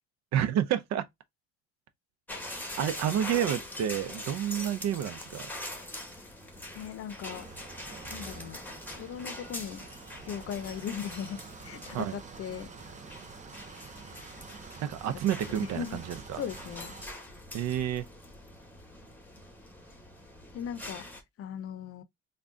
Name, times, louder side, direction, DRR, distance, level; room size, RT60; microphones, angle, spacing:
voice 1, 0.3-1.0 2.8-5.5 11.9-12.1 14.8-16.4 17.5-18.1, right 10 dB, 65° right, 0.7 m, -29 dB
sound 1, 2.3-21.2, left 1 dB, 5° left, 1.1 m, -43 dB
voice 2, 6.7-7.5 8.1-8.6 9.0-9.8 10.3-12.7 15.6-16.0 16.3-16.9 20.5-21.1 21.4-22.0, left 8 dB, 50° left, 0.6 m, -38 dB
sound 2, 7.2-17.1, right 5 dB, 25° right, 0.7 m, -48 dB
3.6 x 2.3 x 3.6 m
cardioid pair, 90°, 29 cm